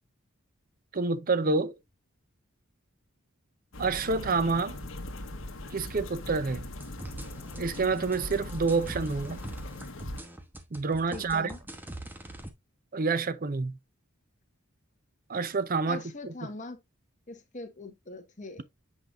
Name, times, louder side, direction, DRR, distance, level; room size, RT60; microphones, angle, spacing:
voice 1, 0.9-1.7 3.8-4.8 5.7-6.7 7.6-9.4 10.7-11.5 12.9-13.7 15.3-16.3, right 4 dB, 45° right, 0.6 m, -28 dB
sound 1, 3.7-10.2, left 2 dB, 70° left, 1.2 m, -40 dB
sound 2, 6.5-12.5, right 1 dB, 10° right, 0.9 m, -43 dB
voice 2, 11.1-11.6 15.9-16.8 17.3-18.6, left 2 dB, 35° left, 1.3 m, -42 dB
8.1 x 5.1 x 2.5 m
head